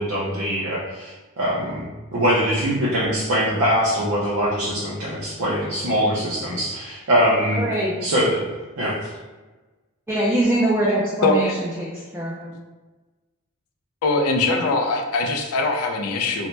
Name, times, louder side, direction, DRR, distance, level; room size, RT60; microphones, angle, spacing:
voice 1, 0.0-1.8 2.1-7.6 8.0-8.5 8.8-9.1, equal, 75° right, -7 dB, 0.6 m, -22 dB
voice 2, 7.6-7.9 10.1-12.5, right 1 dB, 10° right, -6 dB, 0.3 m, -23 dB
voice 3, 11.2-11.5 14.0-16.5, left 3 dB, 90° left, 4 dB, 0.4 m, -21 dB
2.7 x 2.1 x 3.1 m, 1.2 s
head